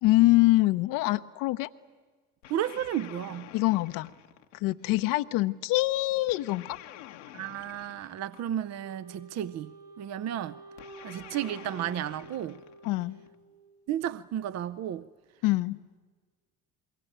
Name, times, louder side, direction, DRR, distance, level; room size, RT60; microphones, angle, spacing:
voice 1, 0.0-1.7 3.5-4.1 4.6-6.8 12.8-13.2 15.4-15.8, left 19 dB, 65° left, 0.8 m, -24 dB
sound 1, 2.4-5.0 6.3-8.8 10.8-13.3, left 13 dB, 85° left, 1.2 m, -49 dB
voice 2, 2.5-3.5 7.3-10.6 11.0-12.6 13.9-15.1, right 11 dB, 50° right, 0.7 m, -33 dB
Wind instrument woodwind instrument, 8.8-13.9, right 3 dB, 90° right, 3.6 m, -50 dB
26.5 x 22.0 x 8.9 m
hypercardioid pair, 65°, 35 cm